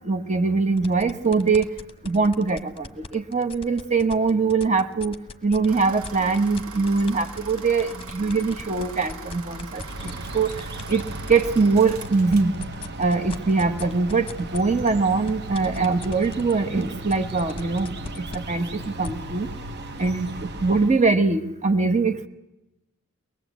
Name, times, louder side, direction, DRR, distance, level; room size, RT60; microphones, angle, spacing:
voice 1, 0.0-1.7 2.0-5.1 5.4-10.5 10.9-11.0 11.3-12.5 13.0-17.9 18.2-19.5 20.0-20.3 20.6-22.3, right 4 dB, 30° right, 7 dB, 1.2 m, -22 dB
sound 1, 0.8-5.7 6.0-11.5 11.9-19.1, left 3 dB, 25° left, 1.1 m, -39 dB
sound 2, 5.7-12.6, right 3 dB, 75° right, 1.7 m, -40 dB
sound 3, 9.7-21.1, right 2 dB, 50° right, 1.0 m, -37 dB
23.5 x 20.0 x 8.3 m, 0.99 s
head